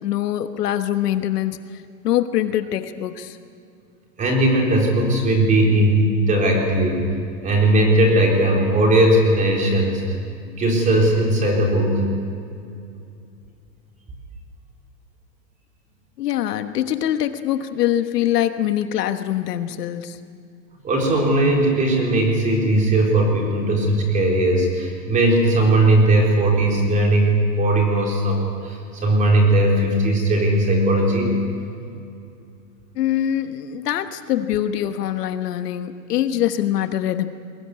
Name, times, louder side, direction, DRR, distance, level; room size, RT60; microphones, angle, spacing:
voice 1, 0.0-1.6 2.0-3.4 16.2-20.2 33.0-37.3, left 11 dB, 70° left, 9 dB, 1.4 m, -23 dB
voice 2, 4.2-7.0 7.4-10.2 10.6-12.0 20.8-31.3, right 1 dB, 15° right, 0 dB, 4.0 m, -18 dB
22.5 x 18.5 x 9.7 m, 2.5 s
supercardioid pair, 165°, 50 cm